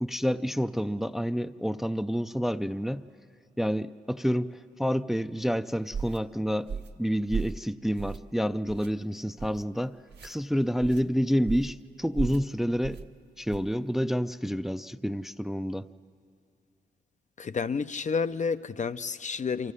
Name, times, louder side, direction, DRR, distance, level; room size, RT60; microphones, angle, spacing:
voice 1, 0.0-3.0 3.6-13.0 13.4-15.9, equal, ahead, 12 dB, 0.5 m, -29 dB
sound 1, 5.9-6.2 6.7-7.0 7.3-7.6 8.0-8.3 8.7-8.9 9.4-9.6 10.1-10.4 10.8-11.0 11.5-11.8 12.1-12.5 12.8-13.1 13.5-13.7, right 6 dB, 65° right, 1.2 m, -35 dB
voice 2, 17.4-19.7, left 5 dB, 40° left, 11 dB, 0.6 m, -30 dB
24.0 x 15.0 x 9.8 m, 2.4 s
cardioid pair, 60°, 18 cm